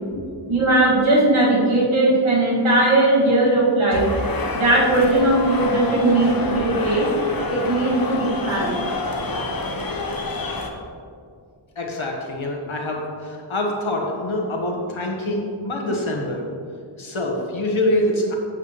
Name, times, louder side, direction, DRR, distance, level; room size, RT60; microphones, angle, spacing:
voice 1, 0.5-4.1 4.5-7.1 7.5-8.7, right 2 dB, 90° right, -5 dB, 2.1 m, -18 dB
sound 1, 3.9-10.7, left 2 dB, 50° left, 0.9 m, -28 dB
voice 2, 11.8-16.5 17.0-18.3, left 1 dB, 80° left, 0 dB, 1.4 m, -25 dB
8.8 x 7.5 x 3.2 m, 2.2 s
wide cardioid pair, 55°, 47 cm